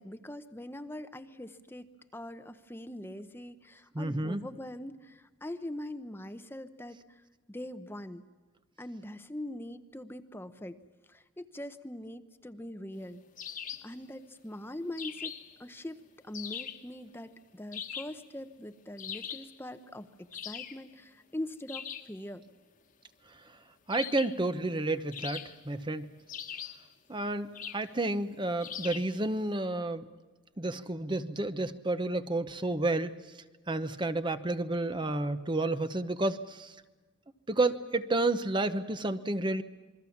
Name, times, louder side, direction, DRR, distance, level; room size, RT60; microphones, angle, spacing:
voice 1, 0.0-7.2 7.5-8.2 8.8-10.8 11.1-13.2 13.8-15.3 15.6-22.4, left 1 dB, 10° left, 10 dB, 0.8 m, -42 dB
voice 2, 3.9-4.4 23.9-26.1 27.1-30.1 30.6-33.1 33.7-36.7 37.5-39.6, right 2 dB, 25° right, 11 dB, 0.9 m, -31 dB
sound 1, 13.4-13.9 15.0-15.6 16.3-16.9 17.7-18.2 19.0-19.5 20.3-20.8 21.7-22.1 23.9-24.4 25.1-25.8 26.3-26.9 27.5-27.9 28.6-29.2, left 8 dB, 45° left, 1.4 m, -41 dB
28.0 x 22.5 x 7.2 m, 1.3 s
head